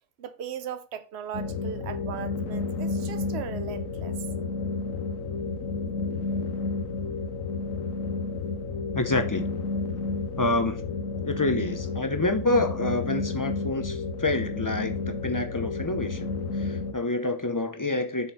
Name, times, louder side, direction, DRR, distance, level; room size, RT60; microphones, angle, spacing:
voice 1, 0.2-4.2, right 8 dB, 55° right, 1.0 m, -38 dB
sound 1, 1.3-16.9, left 4 dB, 65° left, 1.4 m, -31 dB
voice 2, 8.9-9.5 10.4-10.9 11.2-18.3, left 2 dB, 20° left, 0.5 m, -28 dB
7.2 x 4.4 x 5.6 m
omnidirectional pair, 1.5 m